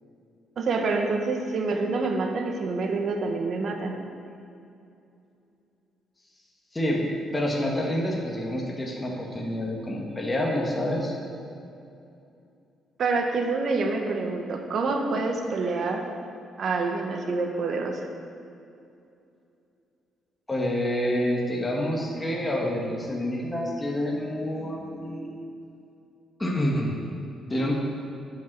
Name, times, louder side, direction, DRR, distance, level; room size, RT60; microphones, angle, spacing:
voice 1, 0.6-4.0 13.0-16.1 16.6-18.1, right 3 dB, 60° right, 3 dB, 1.2 m, -27 dB
voice 2, 7.3-11.1 20.5-25.3 26.4-27.0 27.5-27.7, left 1 dB, 15° left, -2 dB, 1.7 m, -27 dB
8.1 x 7.1 x 6.1 m, 2.6 s
cardioid pair, 90°, 0 cm